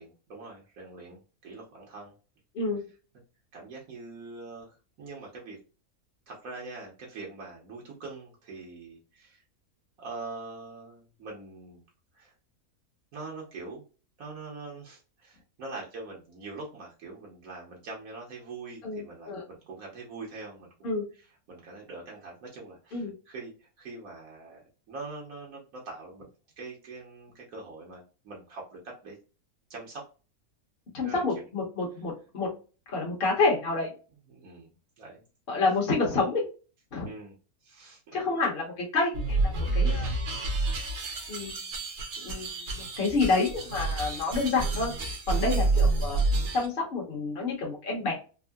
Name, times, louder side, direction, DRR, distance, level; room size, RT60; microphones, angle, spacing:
voice 1, 0.0-2.1 3.5-5.6 6.3-9.4 10.0-11.8 12.1-12.3 13.1-13.8 14.2-20.7 21.5-24.6 24.9-26.3 26.6-29.2 29.7-30.1 31.0-31.4 34.3-35.2 37.0-37.3 37.6-38.4 39.8-40.2 45.4-45.8, right 3 dB, 70° right, -2 dB, 1.3 m, -43 dB
voice 2, 2.5-2.9 18.8-19.4 20.8-21.1 22.9-23.1 30.9-32.5 32.9-33.9 35.5-36.4 36.9-37.1 38.1-40.1 41.3-41.5 42.2-45.0 45.3-46.2 46.5-48.1, left 3 dB, 45° left, -2 dB, 1.0 m, -28 dB
sound 1, 39.1-46.7, right 3 dB, 55° right, 1.0 m, -29 dB
3.6 x 2.0 x 2.2 m, 0.34 s
omnidirectional pair, 1.5 m